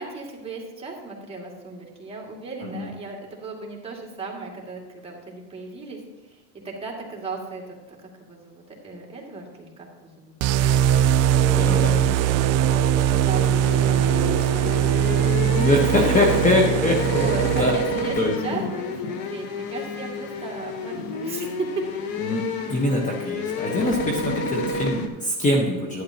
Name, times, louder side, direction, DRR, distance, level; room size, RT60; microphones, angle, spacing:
voice 1, 0.0-6.4 6.6-11.3 12.3-16.8 17.1-21.9, right 3 dB, 15° right, -3 dB, 2.2 m, -36 dB
voice 2, 2.6-2.9 11.3-12.2 15.5-17.7 18.2-18.3 22.2-26.0, left 1 dB, 20° left, 0 dB, 1.2 m, -23 dB
sound 1, 10.4-18.0, right 10 dB, 45° right, 0.4 m, -21 dB
sound 2, 13.3-25.1, left 2 dB, 65° left, 1.2 m, -29 dB
11.0 x 9.9 x 2.9 m, 1.2 s
supercardioid pair, 120°, 36 cm